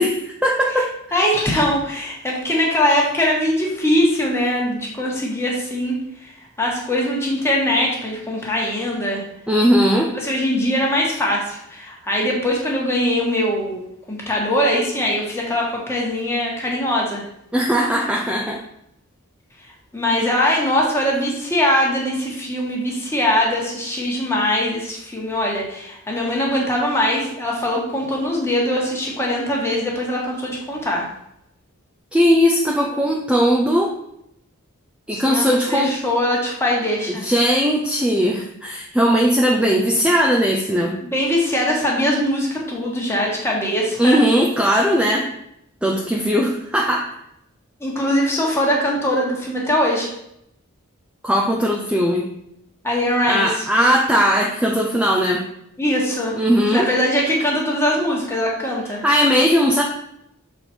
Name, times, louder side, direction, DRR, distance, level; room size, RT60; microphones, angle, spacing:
voice 1, 0.0-1.2 9.5-10.1 17.5-18.6 32.1-33.9 35.1-35.9 37.2-41.0 44.0-45.3 45.8-47.1 51.2-52.3 53.2-55.4 56.4-56.9 59.0-59.8, equal, 5° right, -1 dB, 0.5 m, -18 dB
voice 2, 1.1-6.0 6.2-6.3 6.6-9.2 10.1-13.8 14.1-17.2 19.9-31.0 35.1-37.2 41.0-44.2 47.8-50.1 52.8-53.5 55.8-56.4 56.7-59.0, left 1 dB, 10° left, -2 dB, 1.5 m, -21 dB
7.0 x 4.3 x 4.4 m, 0.78 s
head